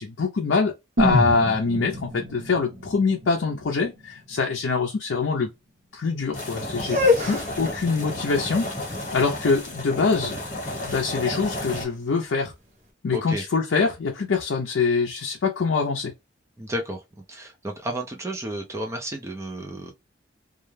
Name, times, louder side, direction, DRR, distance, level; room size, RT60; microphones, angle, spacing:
voice 1, 0.0-5.5 5.9-8.7 9.1-10.4 10.7-12.5 13.0-16.1, left 4 dB, 70° left, 0.5 m, -24 dB
sound 1, 1.0-4.9 5.2-5.3, equal, 55° right, 1.1 m, -28 dB
sound 2, 6.3-11.9, left 1 dB, 35° left, 1.0 m, -32 dB
sound 3, 6.8-12.7, left 3 dB, 40° right, 0.8 m, -28 dB
voice 2, 13.1-13.4 16.6-17.0 17.3-19.9, right 1 dB, 15° right, 0.4 m, -32 dB
2.3 x 2.0 x 3.1 m
head